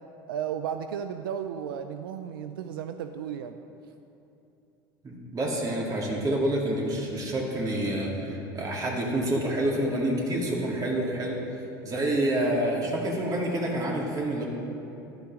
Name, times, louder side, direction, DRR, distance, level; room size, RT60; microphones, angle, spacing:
voice 1, 0.3-3.6, right 8 dB, 80° right, 8 dB, 0.5 m, -34 dB
voice 2, 5.0-11.4 11.8-14.4, right 1 dB, 30° right, -3 dB, 3.3 m, -28 dB
14.5 x 12.5 x 3.7 m, 2.8 s
hypercardioid pair, 90°, 12 cm